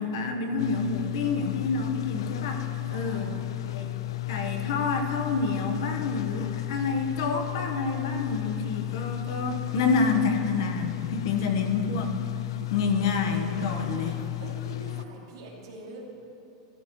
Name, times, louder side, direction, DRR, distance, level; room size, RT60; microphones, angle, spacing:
voice 1, 0.0-3.3 3.7-4.0 4.3-12.1 12.7-14.2, left 4 dB, 60° left, 5 dB, 1.1 m, -28 dB
sound 1, 0.6-15.0, left 17 dB, 80° left, 0.4 m, -33 dB
voice 2, 2.8-3.4 11.4-11.5 13.6-14.1 14.4-16.0, right 2 dB, 85° right, -5 dB, 2.8 m, -45 dB
13.5 x 13.5 x 3.1 m, 2.8 s
supercardioid pair, 170°, 3 cm